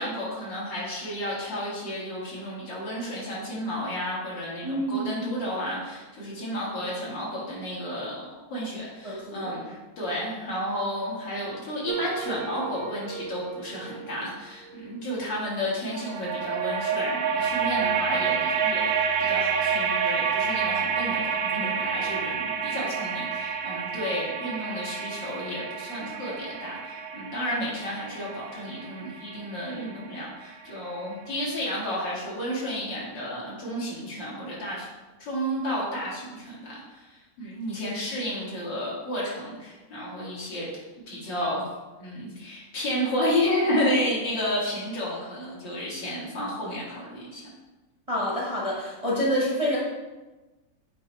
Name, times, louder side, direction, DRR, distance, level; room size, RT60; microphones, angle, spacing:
voice 1, 0.0-18.9 19.2-34.9 35.2-40.7 41.1-41.6 42.0-47.5, equal, 75° left, -6 dB, 2.6 m, -32 dB
voice 2, 4.6-5.3 9.0-9.5 17.8-17.9 48.1-49.8, equal, 25° right, -5 dB, 0.8 m, -27 dB
sound 1, 11.9-15.1 15.9-30.8, right 6 dB, 85° right, 1.3 m, -29 dB
8.0 x 3.0 x 4.5 m, 1.2 s
omnidirectional pair, 2.0 m